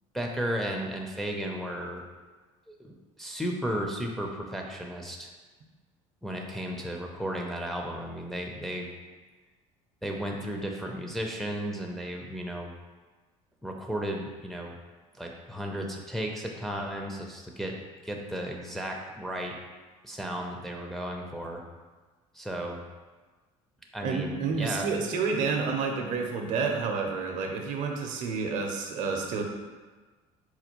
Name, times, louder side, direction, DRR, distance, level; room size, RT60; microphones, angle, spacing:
voice 1, 0.1-2.0 2.8-5.3 6.2-8.9 10.0-12.7 13.6-14.7 15.2-17.8 18.0-19.6 20.0-21.6 22.3-22.8 23.9-24.9, equal, ahead, 0 dB, 0.4 m, -34 dB
voice 2, 24.0-29.4, right 4 dB, 60° right, 2 dB, 0.6 m, -29 dB
4.2 x 2.2 x 2.9 m, 1.3 s
supercardioid pair, 90°, 14 cm